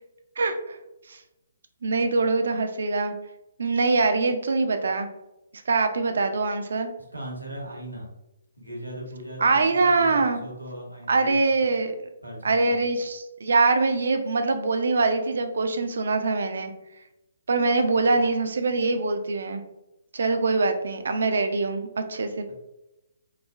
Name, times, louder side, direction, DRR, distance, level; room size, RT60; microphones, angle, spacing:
voice 1, 0.4-0.8 1.1-1.2 1.8-3.1 3.6-5.1 5.7-6.9 9.4-10.4 11.1-11.9 12.4-16.7 17.5-19.6 20.1-22.5, right 3 dB, 65° right, 7 dB, 0.4 m, -23 dB
voice 2, 7.1-8.1 8.6-11.8 12.2-12.9 17.9-18.1 20.7-20.9, right 1 dB, 90° right, -1 dB, 0.9 m, -39 dB
3.1 x 2.1 x 2.3 m, 0.93 s
figure-of-eight pair, 135°, 0 cm